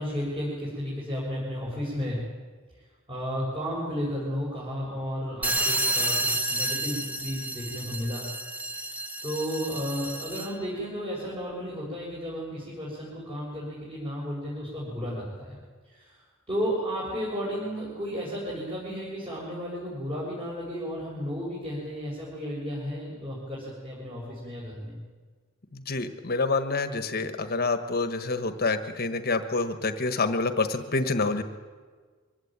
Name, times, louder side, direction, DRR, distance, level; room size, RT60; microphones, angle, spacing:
voice 1, 0.0-2.2 3.1-8.3 8.7-8.8 9.2-15.6 15.9-16.2 16.5-25.0, equal, 25° right, -6 dB, 6.1 m, -33 dB
sound 1, 5.4-10.6, right 1 dB, 5° right, 1.3 m, -30 dB
voice 2, 25.7-31.4, left 3 dB, 45° left, 9 dB, 1.4 m, -27 dB
23.5 x 16.5 x 8.8 m, 1.5 s
head